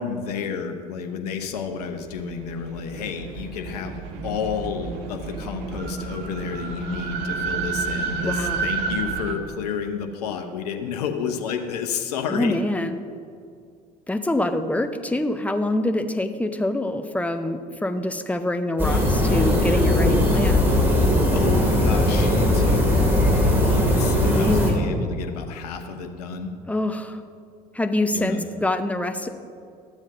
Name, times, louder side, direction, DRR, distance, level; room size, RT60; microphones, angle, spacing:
voice 1, 0.0-12.6 21.3-23.1 23.4-26.6 28.1-28.4, left 6 dB, 75° left, 5 dB, 0.7 m, -31 dB
sound 1, 1.9-9.4, right 5 dB, 60° right, 0.9 m, -30 dB
voice 2, 8.2-8.6 12.3-13.0 14.1-20.6 24.3-24.9 26.7-27.2 27.7-29.3, left 1 dB, 5° left, 8 dB, 0.6 m, -25 dB
sound 2, 18.8-24.7, left 1 dB, 10° right, 2.1 m, -19 dB
13.0 x 7.3 x 2.6 m, 2.3 s
figure-of-eight pair, 60°, 20 cm